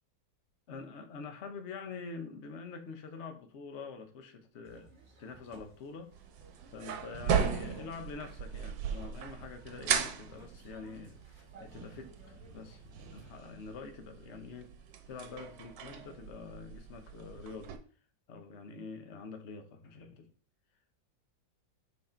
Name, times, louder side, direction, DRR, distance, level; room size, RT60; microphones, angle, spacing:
voice 1, 0.7-6.1 6.7-14.7 15.1-17.8 18.3-20.3, left 4 dB, 45° left, 1.0 m, -46 dB
sound 1, 4.6-13.4, right 3 dB, 35° right, 2.0 m, -58 dB
sound 2, 6.1-17.8, right 7 dB, 80° right, 1.5 m, -37 dB
6.2 x 4.2 x 4.4 m
omnidirectional pair, 2.0 m